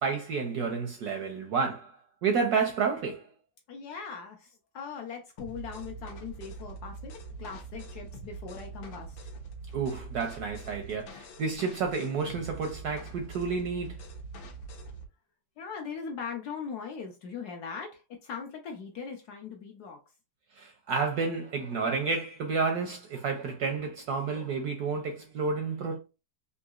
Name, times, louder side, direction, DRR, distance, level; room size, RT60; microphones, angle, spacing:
voice 1, 0.0-2.0 2.2-3.3 9.7-14.0 20.6-26.0, right 5 dB, 75° right, 0.9 m, -30 dB
voice 2, 3.7-9.2 15.6-20.0, left 6 dB, 70° left, 1.0 m, -40 dB
sound 1, 5.4-15.1, right 3 dB, 85° left, 1.5 m, -43 dB
3.8 x 2.7 x 2.3 m
omnidirectional pair, 2.1 m